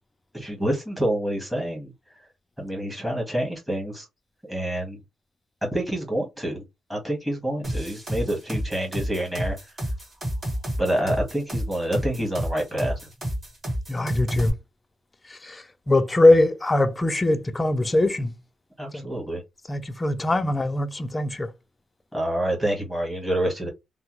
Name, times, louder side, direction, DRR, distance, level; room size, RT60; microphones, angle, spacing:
voice 1, 0.3-1.9 2.6-4.1 4.4-5.0 5.7-6.6 6.9-9.6 10.8-13.0 18.8-19.4 22.1-23.7, right 1 dB, 5° right, 1.4 m, -27 dB
sound 1, 7.6-14.5, equal, 25° right, 2.1 m, -29 dB
voice 2, 13.9-14.5 15.4-18.3 18.9-19.0 19.7-21.5, left 2 dB, 15° left, 0.4 m, -21 dB
3.3 x 2.0 x 3.0 m
cardioid pair, 125°, 0 cm